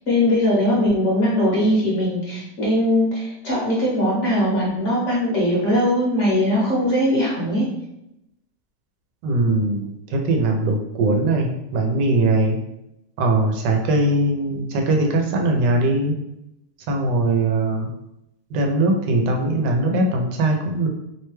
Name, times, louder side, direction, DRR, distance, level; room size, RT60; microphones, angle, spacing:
voice 1, 0.1-7.6, left 1 dB, 55° left, -5 dB, 1.0 m, -20 dB
voice 2, 9.2-12.6 13.2-16.1 16.9-17.9 18.5-20.9, right 2 dB, 85° right, 3 dB, 1.2 m, -20 dB
3.0 x 2.2 x 3.0 m, 0.85 s
omnidirectional pair, 1.8 m